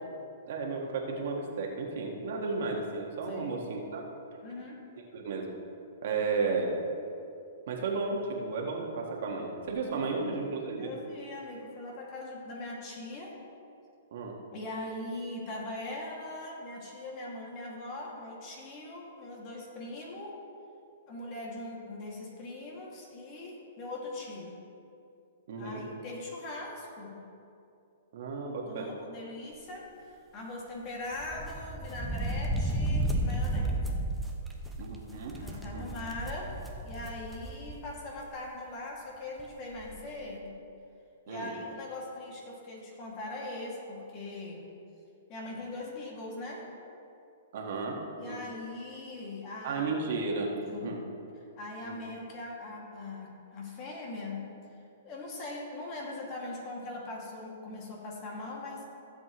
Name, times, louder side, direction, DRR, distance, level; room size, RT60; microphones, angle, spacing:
voice 1, 0.5-4.0 5.1-5.5 6.0-6.8 7.7-10.9 14.1-14.3 25.5-25.8 28.1-28.9 34.8-35.4 35.7-35.8 41.3-41.6 47.5-48.4 49.6-50.5 50.8-51.0 51.8-52.0, right 4 dB, 65° right, 0 dB, 1.7 m, -33 dB
voice 2, 3.3-3.6 4.4-4.8 6.1-6.2 10.0-10.3 10.8-13.3 14.5-20.4 21.1-24.5 25.6-27.2 28.6-34.1 35.4-40.6 41.3-44.7 45.3-46.7 48.2-49.9 50.7-51.1 51.6-54.6 55.0-58.8, left 2 dB, 35° left, -2 dB, 2.2 m, -41 dB
sound 1, 31.1-37.8 38.2-38.3 39.4-39.5 39.7-40.0, right 1 dB, 5° right, 0.8 m, -33 dB
15.5 x 7.9 x 3.1 m, 2.6 s
hypercardioid pair, 145°, 0 cm